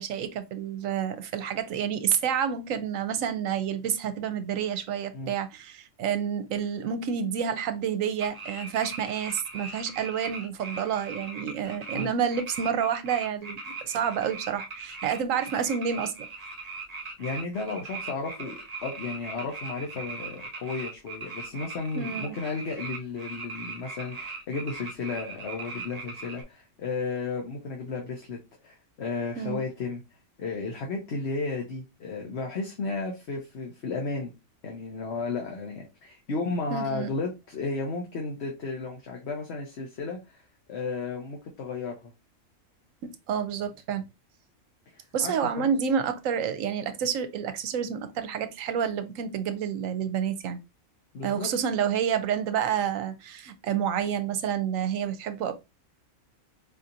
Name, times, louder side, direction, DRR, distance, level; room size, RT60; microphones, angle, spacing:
voice 1, 0.0-13.6 13.8-16.3 21.9-22.4 29.4-29.6 36.7-37.1 43.0-44.0 45.1-50.6 51.2-55.5, right 8 dB, 80° right, 1.0 m, -29 dB
sound 1, 8.2-12.0 12.3-26.4, right 4 dB, 35° right, 0.9 m, -39 dB
voice 2, 17.2-30.0 30.4-34.3 34.6-40.4 40.7-42.1 44.9-45.7 51.1-51.5, left 3 dB, 60° left, 1.1 m, -34 dB
4.6 x 2.8 x 2.5 m
omnidirectional pair, 1.4 m